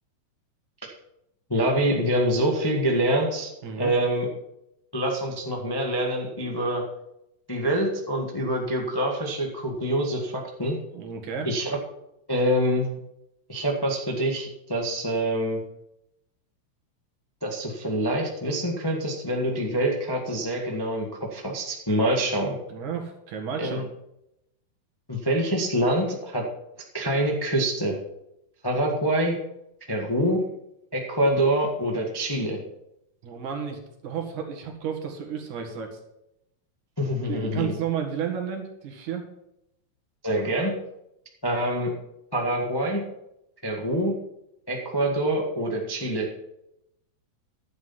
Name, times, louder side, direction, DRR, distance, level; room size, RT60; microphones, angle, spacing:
voice 1, 1.5-3.5 3.8-4.3 4.9-6.8 7.5-10.8 11.4-11.8 12.3-12.9 13.5-15.6 17.4-22.6 23.6-23.8 25.1-26.5 26.9-28.0 28.6-29.4 29.9-30.4 30.9-32.6 37.0-37.7 40.2-40.7 41.4-41.9 42.3-43.0 43.6-44.2 44.7-46.3, right 1 dB, 30° left, 0 dB, 0.4 m, -25 dB
voice 2, 3.6-3.9 10.9-11.5 22.7-23.9 33.2-36.0 37.2-39.3, right 7 dB, 70° right, 3 dB, 3.1 m, -32 dB
11.0 x 8.1 x 5.7 m, 0.84 s
omnidirectional pair, 3.7 m